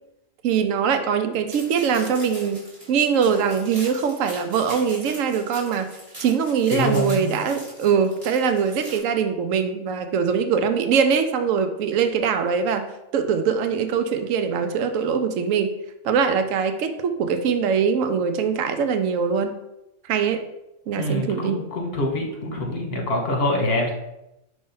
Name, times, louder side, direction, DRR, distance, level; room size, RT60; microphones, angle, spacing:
voice 1, 0.4-5.9 6.2-12.9 13.1-15.7 16.0-19.5 20.1-20.4 20.9-21.6, right 6 dB, 90° right, 8 dB, 1.0 m, -22 dB
sound 1, 1.5-9.0, right 1 dB, 25° right, 2.4 m, -41 dB
voice 2, 6.7-7.3 21.0-23.9, left 1 dB, 55° left, 1 dB, 1.5 m, -25 dB
5.2 x 3.3 x 5.4 m, 0.90 s
omnidirectional pair, 1.3 m